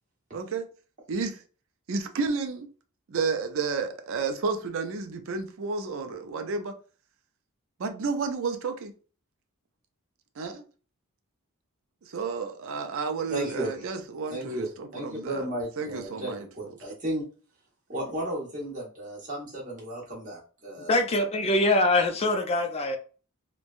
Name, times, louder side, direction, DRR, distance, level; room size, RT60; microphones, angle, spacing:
voice 1, 0.3-0.6 1.1-1.4 1.9-2.7 3.1-6.7 7.8-8.9 10.4-10.6 12.1-15.5 15.8-16.5, right 4 dB, 65° right, 0.5 m, -31 dB
voice 2, 13.3-13.9 14.3-17.2 17.9-21.0, right 1 dB, 35° right, 1.2 m, -34 dB
voice 3, 20.9-23.0, left 2 dB, 30° left, 0.4 m, -23 dB
3.1 x 2.2 x 2.4 m
head